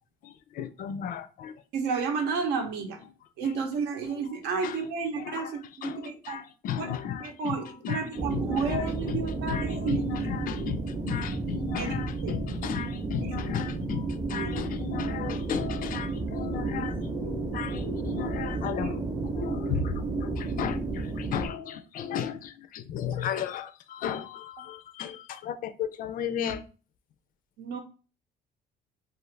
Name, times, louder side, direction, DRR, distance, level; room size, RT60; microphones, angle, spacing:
voice 1, 0.2-1.6 3.4-3.7 4.1-4.2 4.6-4.8 5.1-7.6 7.8-26.6, left 8 dB, 55° left, 0.4 m, -35 dB
voice 2, 1.7-3.0 3.4-6.4 6.8-6.9 7.2-10.0 11.8-11.9 12.2-12.4 13.2-13.3 14.3-14.6 17.5-17.7 27.6-27.8, right 5 dB, 85° right, 0.7 m, -32 dB
sound 1, 8.2-21.5, right 3 dB, 25° right, 0.6 m, -32 dB
2.4 x 2.4 x 3.1 m
cardioid pair, 110°, 17 cm